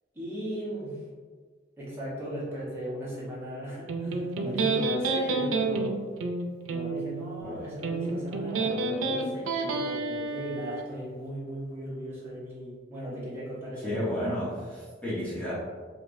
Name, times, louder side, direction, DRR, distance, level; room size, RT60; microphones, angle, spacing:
voice 1, 0.1-1.0 1.8-6.0 6.7-14.2, equal, 15° right, -10 dB, 1.2 m, -37 dB
Electric guitar, 3.9-10.9, right 3 dB, 90° right, 0.4 m, -30 dB
voice 2, 13.8-15.5, left 1 dB, 10° left, -10 dB, 1.1 m, -32 dB
5.1 x 2.5 x 2.6 m, 1.5 s
head